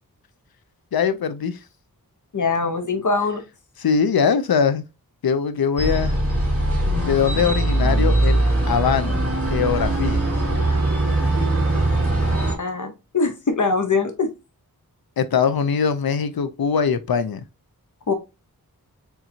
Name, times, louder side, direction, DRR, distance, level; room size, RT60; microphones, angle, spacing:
voice 1, 0.9-1.6 3.8-4.8 5.2-6.2 7.0-8.4 8.7-9.2 9.5-10.2 15.2-17.4, left 6 dB, 75° left, 0.6 m, -21 dB
voice 2, 2.3-3.4 12.6-14.3 18.1-18.2, left 4 dB, 55° left, 1.0 m, -22 dB
sound 1, 5.8-12.5, right 1 dB, 40° right, 2.4 m, -21 dB
4.4 x 3.7 x 2.7 m
wide cardioid pair, 50°, 36 cm